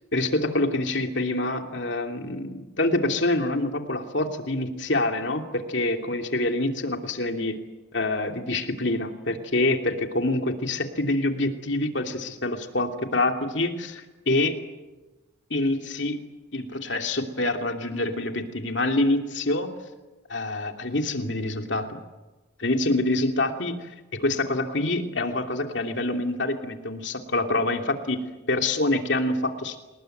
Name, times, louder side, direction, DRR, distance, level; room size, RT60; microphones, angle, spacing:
voice 1, 0.1-7.6 7.9-14.6 15.5-16.2 16.5-19.7 20.3-22.0 22.6-28.2 28.5-29.8, left 2 dB, 60° left, 5 dB, 2.9 m, -26 dB
28.5 x 20.0 x 9.3 m, 1.1 s
head